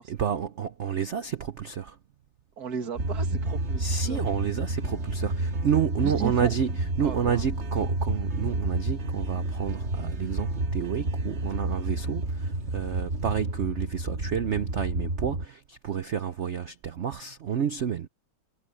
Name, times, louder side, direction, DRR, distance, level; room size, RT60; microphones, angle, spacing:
voice 1, 0.1-2.0 3.8-18.1, right 8 dB, 90° right, 0.6 m, -30 dB
voice 2, 2.6-4.3 6.0-6.5 7.0-7.4, right 7 dB, 50° right, 2.2 m, -35 dB
sound 1, 2.9-15.4, right 2 dB, 35° right, 2.0 m, -30 dB
omnidirectional pair, 2.2 m